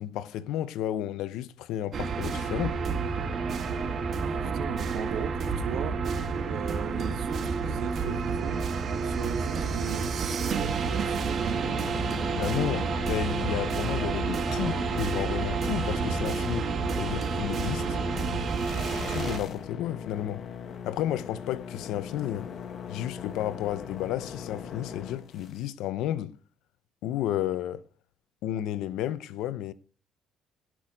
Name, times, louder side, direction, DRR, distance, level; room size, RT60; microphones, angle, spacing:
voice 1, 0.0-2.8 12.3-18.0 19.1-20.5 20.8-22.5 22.9-26.4 27.0-27.8 28.4-29.7, left 12 dB, 80° left, 0.8 m, -32 dB
sound 1, 1.9-19.4, right 5 dB, 45° right, 2.1 m, -29 dB
voice 2, 4.2-6.0 6.5-8.7 9.0-11.9, right 9 dB, 70° right, 1.5 m, -37 dB
sound 2, 11.0-25.6, left 8 dB, 50° left, 1.6 m, -40 dB
17.0 x 6.2 x 5.1 m
cardioid pair, 110°, 0 cm